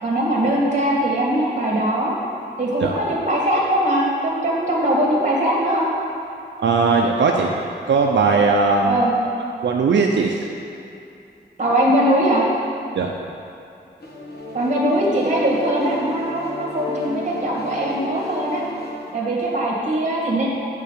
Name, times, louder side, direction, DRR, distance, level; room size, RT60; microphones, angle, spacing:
voice 1, 0.0-2.1 2.6-5.9 8.8-9.1 11.6-12.4 14.5-18.6 19.1-20.5, right 1 dB, 40° right, -4 dB, 2.0 m, -21 dB
voice 2, 6.6-7.5 7.9-9.0 9.6-10.4 12.9-13.1, right 4 dB, 80° right, 0 dB, 0.5 m, -18 dB
sound 1, 14.0-19.1, left 2 dB, 60° left, 1.2 m, -33 dB
8.3 x 4.6 x 7.4 m, 2.6 s
wide cardioid pair, 145°, 19 cm